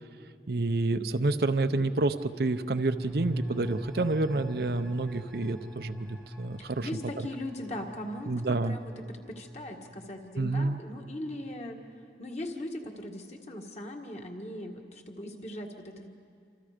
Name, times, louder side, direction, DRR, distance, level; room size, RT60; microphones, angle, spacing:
voice 1, 0.5-6.9 8.3-8.8 10.4-10.8, right 2 dB, 60° right, 9 dB, 0.7 m, -29 dB
sound 1, 2.1-11.5 11.8-11.9, equal, 5° left, 1.3 m, -42 dB
voice 2, 6.6-11.8 12.2-16.1, left 1 dB, 40° left, 2 dB, 1.8 m, -39 dB
27.0 x 26.5 x 5.1 m, 2.3 s
head